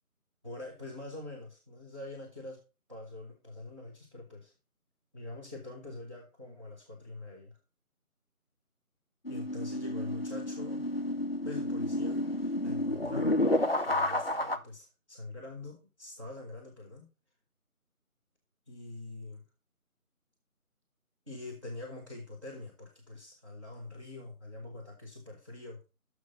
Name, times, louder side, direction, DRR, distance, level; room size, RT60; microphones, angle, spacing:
voice 1, 0.4-2.6 2.9-4.5 5.1-7.6 9.3-10.8 11.4-13.5 13.8-17.1 18.7-19.4 21.3-25.8, left 2 dB, 20° right, -6 dB, 1.3 m, -44 dB
sound 1, 9.2-14.6, left 1 dB, 45° left, 0.6 m, -31 dB
6.7 x 6.4 x 5.2 m, 0.30 s
figure-of-eight pair, 170°, 44 cm